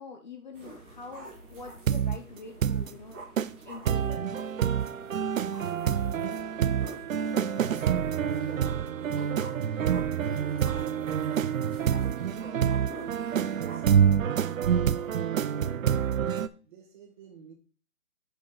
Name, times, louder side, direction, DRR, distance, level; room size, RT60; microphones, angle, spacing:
voice 1, 0.0-3.2 3.7-4.3, left 4 dB, 35° left, 3 dB, 0.6 m, -45 dB
sound 1, 0.5-13.9, right 2 dB, 10° right, 0.6 m, -48 dB
sound 2, 1.9-2.2 2.6-2.9 3.4-3.5 3.8-16.5, right 8 dB, 70° right, 0.6 m, -27 dB
voice 2, 7.0-7.6 8.5-9.5 10.2-11.5 11.9-14.3 14.6-17.5, right 7 dB, 35° right, 0 dB, 1.8 m, -49 dB
6.3 x 5.1 x 4.0 m, 0.38 s
hypercardioid pair, 155°, 43 cm